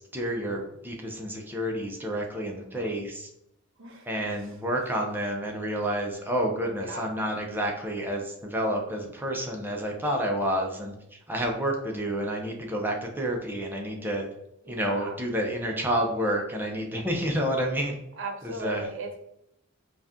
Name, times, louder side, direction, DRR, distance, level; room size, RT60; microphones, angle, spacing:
voice 1, 0.1-3.3 4.0-14.3 14.7-18.0 18.4-18.9, equal, 10° right, 0 dB, 0.6 m, -29 dB
voice 2, 3.8-4.5 6.9-7.1 14.6-15.2 18.2-19.3, right 2 dB, 65° right, 2 dB, 0.8 m, -37 dB
4.1 x 2.4 x 3.5 m, 0.80 s
head